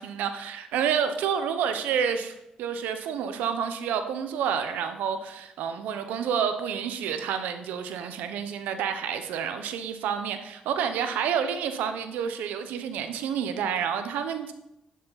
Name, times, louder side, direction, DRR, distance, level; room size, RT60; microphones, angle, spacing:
voice 1, 0.0-14.5, right 7 dB, 85° right, 8 dB, 0.9 m, -29 dB
11.0 x 6.3 x 4.0 m, 0.87 s
supercardioid pair, 60°, 3 cm